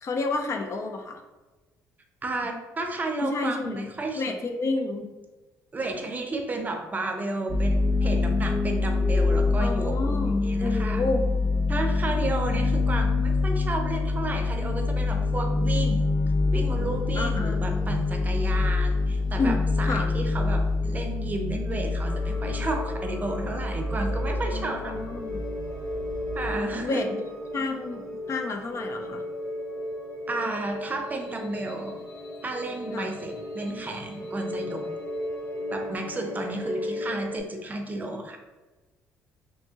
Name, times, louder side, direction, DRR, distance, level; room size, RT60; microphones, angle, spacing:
voice 1, 0.0-1.2 3.2-3.9 4.2-5.1 9.6-11.2 17.1-17.6 19.4-20.1 24.5-25.4 26.8-29.2 32.9-33.1, left 3 dB, 50° left, 5 dB, 0.5 m, -30 dB
voice 2, 2.2-4.2 5.7-11.1 11.7-16.1 16.5-24.9 26.3-27.0 30.3-32.0 32.4-34.9 35.7-38.4, right 2 dB, 25° right, 4 dB, 0.6 m, -32 dB
sound 1, 7.5-26.8, left 3 dB, 10° left, 0.8 m, -26 dB
sound 2, 22.0-37.4, left 1 dB, 65° left, 0.9 m, -35 dB
3.5 x 2.7 x 2.8 m, 1.2 s
cardioid pair, 90°, 6 cm